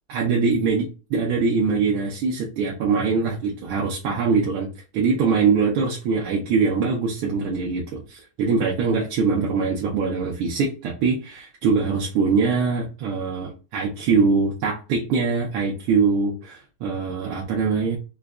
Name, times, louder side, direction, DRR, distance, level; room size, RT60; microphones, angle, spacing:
voice 1, 0.1-4.7 4.9-18.0, right 5 dB, 80° right, -2 dB, 1.5 m, -23 dB
5.0 x 2.2 x 2.3 m, 0.33 s
omnidirectional pair, 2.4 m